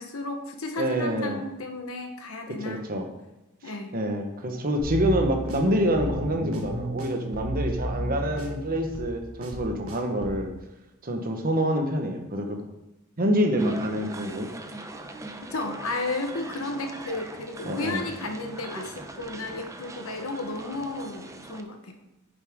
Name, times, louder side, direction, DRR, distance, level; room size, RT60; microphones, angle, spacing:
voice 1, 0.0-2.8 3.6-4.0 15.5-22.0, left 2 dB, 75° left, 5 dB, 1.3 m, -33 dB
voice 2, 0.8-1.4 2.6-3.1 3.9-10.5 11.0-12.6 13.2-14.5 17.6-18.1, equal, 45° right, 4 dB, 1.3 m, -26 dB
sound 1, 4.8-10.5, equal, 75° right, 1.4 m, -33 dB
sound 2, 13.6-21.6, right 2 dB, 15° right, 0.7 m, -41 dB
9.4 x 7.2 x 3.7 m, 0.97 s
head